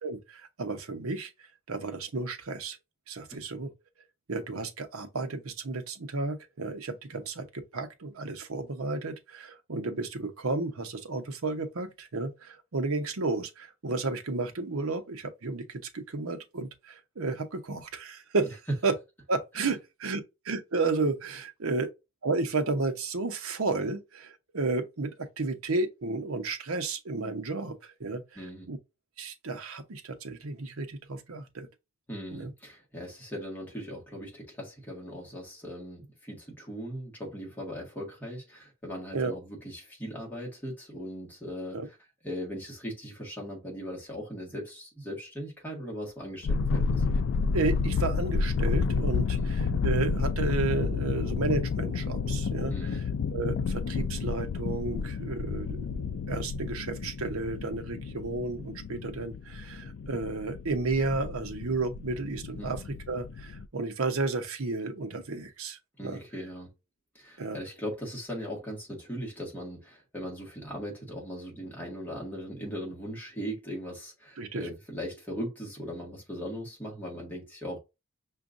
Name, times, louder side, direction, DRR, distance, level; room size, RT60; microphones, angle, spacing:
voice 1, 0.0-1.3 1.7-2.8 3.1-3.7 4.3-18.5 18.8-18.9 19.3-21.9 22.2-28.4 28.7-28.8 29.2-31.7 32.3-32.5 39.1-39.3 41.7-41.9 47.5-53.1 53.3-66.2 67.4-67.6 74.4-74.7, right 3 dB, 75° right, 0.8 m, -32 dB
voice 2, 28.4-28.7 32.1-41.9 42.2-47.0 49.4-49.5 52.7-53.0 62.6-62.8 66.0-66.7 67.1-77.8, equal, 10° left, 1.6 m, -39 dB
sound 1, 46.4-63.7, left 5 dB, 60° left, 0.3 m, -30 dB
6.0 x 2.5 x 2.5 m
head